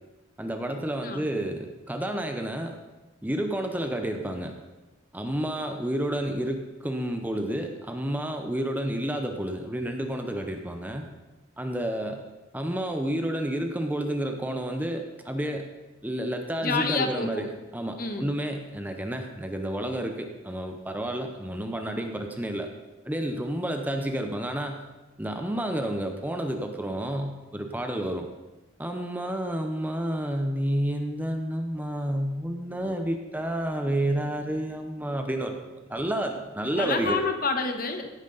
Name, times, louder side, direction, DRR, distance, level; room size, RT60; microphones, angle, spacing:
voice 1, 0.4-2.8 3.2-4.6 5.1-11.0 11.6-12.2 12.5-15.7 16.0-22.7 23.1-24.8 25.2-28.3 28.8-35.6 35.9-37.2, right 1 dB, 10° right, 4 dB, 0.7 m, -30 dB
voice 2, 16.6-17.5 18.0-18.3 36.8-38.1, left 4 dB, 45° left, 6 dB, 1.2 m, -28 dB
16.5 x 9.2 x 4.0 m, 1.1 s
head